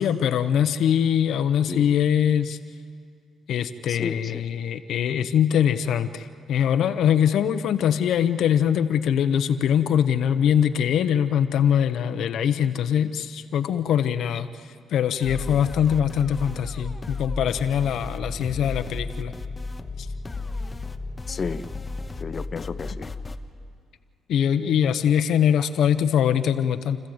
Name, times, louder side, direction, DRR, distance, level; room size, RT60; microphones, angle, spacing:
voice 1, 0.0-2.6 3.5-14.5 14.9-19.3 20.0-20.1 24.3-27.0, left 9 dB, 75° left, 11 dB, 1.0 m, -22 dB
voice 2, 3.9-4.4 21.3-21.6 22.2-23.1, left 5 dB, 40° left, 13 dB, 0.8 m, -32 dB
sound 1, 15.2-23.4, left 3 dB, 20° left, 1.2 m, -34 dB
29.5 x 14.5 x 8.0 m, 2.3 s
cardioid pair, 90°, 0 cm